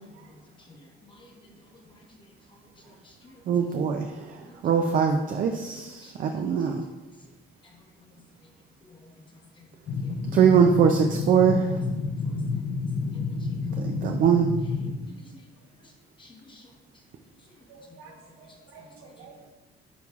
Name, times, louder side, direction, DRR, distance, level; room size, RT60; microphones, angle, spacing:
voice 1, 0.7-1.5 1.9-2.0 2.5-2.6 3.0-3.4 4.4-4.6 5.7-6.3 8.8-9.0 9.3-9.4 10.0-10.3 14.1-14.2 14.9-15.4 16.2-16.7, left 2 dB, 20° left, 0 dB, 1.0 m, -52 dB
voice 2, 3.5-4.3 4.6-6.8 10.3-11.7 13.8-14.5, right 7 dB, 40° right, 5 dB, 0.4 m, -22 dB
sound 1, 9.9-14.9, left 4 dB, 40° left, 0.6 m, -29 dB
voice 3, 17.7-19.5, right 4 dB, 85° right, 2 dB, 1.1 m, -50 dB
9.3 x 5.4 x 2.4 m, 1.1 s
cardioid pair, 175°, 21 cm